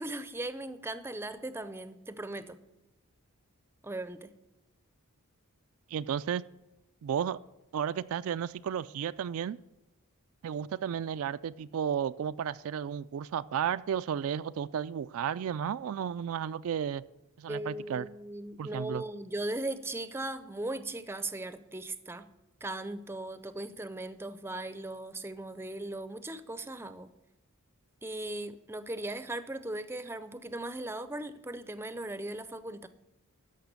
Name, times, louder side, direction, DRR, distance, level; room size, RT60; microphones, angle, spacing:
voice 1, 0.0-2.6 3.8-4.3 17.5-22.3 22.6-27.1 28.0-32.9, right 1 dB, 10° right, 12 dB, 0.5 m, -38 dB
voice 2, 5.9-6.4 7.0-7.4 7.7-9.6 10.4-17.0 17.4-18.1 18.6-19.0, right 8 dB, 65° right, 14 dB, 0.3 m, -33 dB
13.0 x 5.8 x 8.2 m, 0.95 s
head